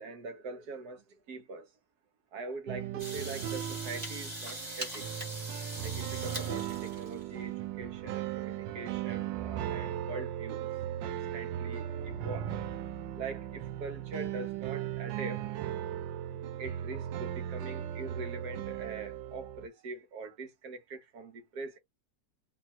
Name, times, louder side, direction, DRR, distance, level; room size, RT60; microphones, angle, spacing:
voice 1, 0.0-1.7 2.3-5.1 5.8-12.5 13.1-15.4 16.6-21.8, right 3 dB, 65° right, 1.5 m, -43 dB
sound 1, 2.7-19.7, right 11 dB, 90° right, 1.3 m, -37 dB
sound 2, 3.0-7.3, right 1 dB, 25° right, 1.4 m, -41 dB
3.1 x 2.4 x 4.2 m
omnidirectional pair, 1.9 m